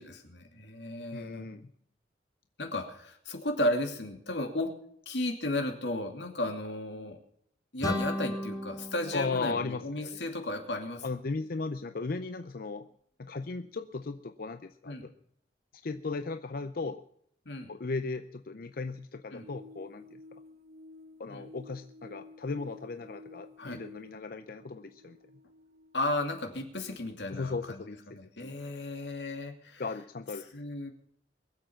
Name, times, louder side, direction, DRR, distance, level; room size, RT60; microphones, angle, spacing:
voice 1, 0.0-1.5 2.6-4.7 5.1-7.2 7.7-11.0 14.9-15.1 17.5-17.7 19.3-19.4 21.3-21.4 23.6-23.8 25.9-29.8 30.5-30.9, left 1 dB, 85° left, 4 dB, 2.6 m, -34 dB
voice 2, 1.1-1.7 9.1-10.3 11.0-12.9 13.2-15.1 15.8-17.0 17.7-20.0 21.2-25.2 27.3-28.0 28.4-28.5 29.8-30.5, left 3 dB, 55° left, 10 dB, 0.6 m, -36 dB
sound 1, 7.8-10.6, left 1 dB, 20° left, 1.4 m, -36 dB
sound 2, 19.3-26.4, left 2 dB, 55° right, 1.0 m, -52 dB
22.5 x 7.9 x 5.8 m, 0.66 s
head